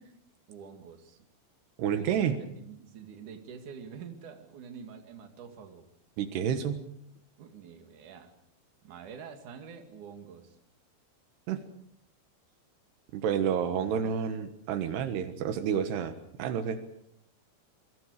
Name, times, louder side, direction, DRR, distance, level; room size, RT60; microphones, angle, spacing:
voice 1, 0.5-1.3 1.9-2.1 2.6-5.9 7.4-8.3 8.8-10.6, right 6 dB, 55° right, 5 dB, 3.5 m, -46 dB
voice 2, 1.8-2.4 6.2-6.8 11.5-11.6 13.1-16.1 16.4-16.8, right 8 dB, 85° right, 8 dB, 3.5 m, -29 dB
27.5 x 24.0 x 4.9 m, 0.71 s
omnidirectional pair, 4.7 m